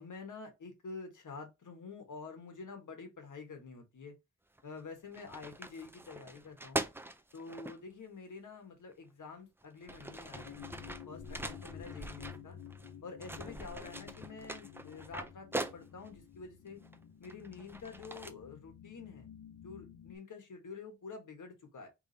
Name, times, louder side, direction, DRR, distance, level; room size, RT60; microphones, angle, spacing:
voice 1, 0.0-4.1 4.6-6.9 7.3-10.7 11.1-12.6 13.0-16.8 17.2-19.3 19.6-21.9, left 4 dB, 70° left, 1.5 m, -48 dB
sound 1, 4.6-4.8 5.1-7.8 8.9-9.0 9.6-12.9 13.2-16.2 16.8-18.3, right 2 dB, 5° right, 0.5 m, -42 dB
sound 2, 10.3-20.2, left 9 dB, 85° left, 0.8 m, -51 dB
3.5 x 3.4 x 4.0 m
wide cardioid pair, 110°, 32 cm